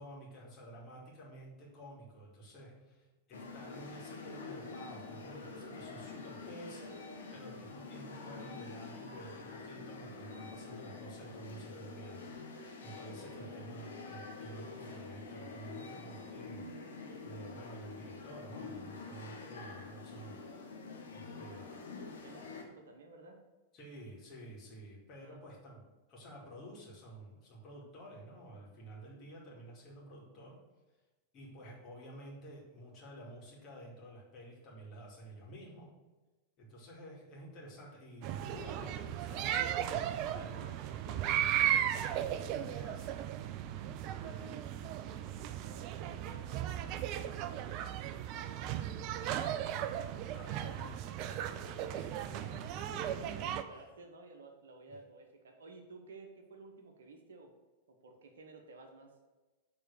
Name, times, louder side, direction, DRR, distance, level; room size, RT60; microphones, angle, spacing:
voice 1, 0.0-7.1 7.3-16.6 17.2-20.4 21.1-21.8 23.7-25.8 26.1-30.6 31.3-35.9 36.6-41.5 42.1-43.2 44.0-44.5 50.3-53.9, right 1 dB, 35° left, -4 dB, 2.3 m, -51 dB
sound 1, 3.3-22.6, left 4 dB, 65° left, 0.9 m, -47 dB
voice 2, 21.4-23.4 25.2-25.4 44.0-44.7 44.9-50.0 53.3-57.5 57.9-59.1, right 3 dB, 65° right, 3 dB, 1.0 m, -55 dB
sound 2, 38.2-53.6, right 10 dB, 40° right, 0.4 m, -36 dB
6.7 x 3.8 x 6.3 m, 1.2 s
figure-of-eight pair, 90°, 0 cm